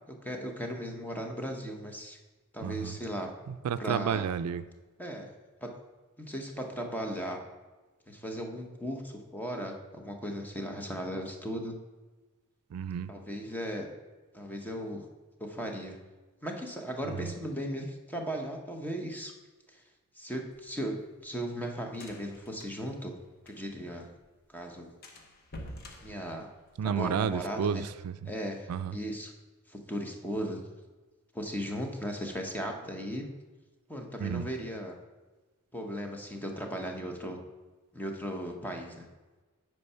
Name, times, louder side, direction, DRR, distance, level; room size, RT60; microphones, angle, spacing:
voice 1, 0.1-2.2 2.5-3.3 3.8-4.3 5.0-5.3 5.6-5.7 6.2-7.4 8.1-11.7 13.1-13.9 14.3-15.1 15.4-16.0 16.4-19.3 20.2-21.0 21.2-23.1 23.5-24.1 24.5-24.9 26.0-26.5 26.8-27.8 28.2-29.3 29.7-30.6 31.3-33.2 33.9-34.9 35.7-37.4 37.9-39.1, equal, 10° left, 2 dB, 0.9 m, -37 dB
voice 2, 2.6-2.9 3.5-4.6 12.7-13.1 26.8-28.3 28.7-29.0 34.2-34.5, right 7 dB, 75° right, 13 dB, 0.3 m, -31 dB
sound 1, 20.5-23.9 24.2-24.3 24.6-24.7 25.0-27.1, left 1 dB, 45° left, 1.0 m, -48 dB
8.5 x 4.6 x 5.6 m, 1.2 s
head